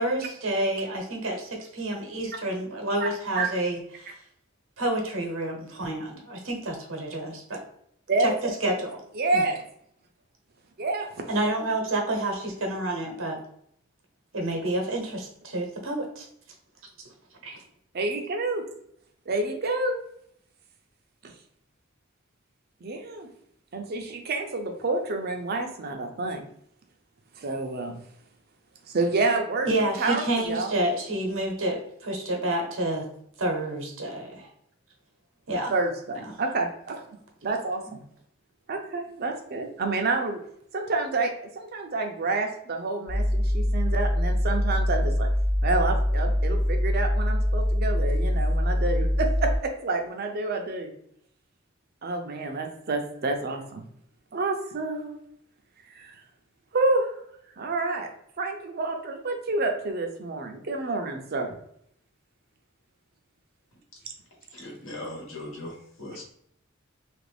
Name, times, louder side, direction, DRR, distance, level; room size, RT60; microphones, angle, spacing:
voice 1, 0.0-4.2 4.8-7.6 8.6-9.0 9.3-9.4 11.3-13.4 14.3-16.3 17.4-17.6 29.7-33.0 33.4-34.5 35.5-35.7 36.2-36.3, right 1 dB, 80° right, 2 dB, 0.9 m, -29 dB
voice 2, 8.1-8.7 9.1-9.6 10.8-11.2 17.9-18.6 19.3-20.0 21.2-21.3 22.8-23.3 23.7-26.4 27.4-28.0 28.9-29.7 30.0-30.7 35.7-37.0 37.4-38.0 38.7-40.4 40.7-45.3 45.6-50.9 52.0-53.9 54.3-55.2 56.0-56.1 56.7-57.1 57.6-58.1 58.4-61.5, right 3 dB, 50° right, 4 dB, 0.5 m, -28 dB
sound 1, 43.1-49.6, left 1 dB, 30° left, 0.4 m, -24 dB
voice 3, 64.5-66.2, left 1 dB, 70° left, -1 dB, 1.1 m, -39 dB
2.9 x 2.5 x 3.3 m, 0.70 s
head